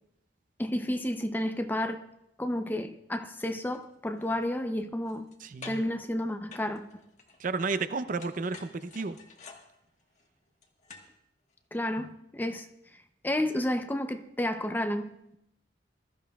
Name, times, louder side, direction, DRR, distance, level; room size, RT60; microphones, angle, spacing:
voice 1, 0.6-2.0 2.4-5.3 5.7-7.0 11.7-12.7 13.2-15.4, left 1 dB, 10° left, 0.6 m, -31 dB
sound 1, 3.7-3.8 4.1-5.4 5.6-6.0 6.5-7.9 8.2-11.2 11.5-11.6, left 4 dB, 45° left, 1.4 m, -50 dB
voice 2, 5.4-5.8 7.4-9.2, right 4 dB, 50° right, 0.6 m, -32 dB
21.0 x 13.0 x 2.3 m
head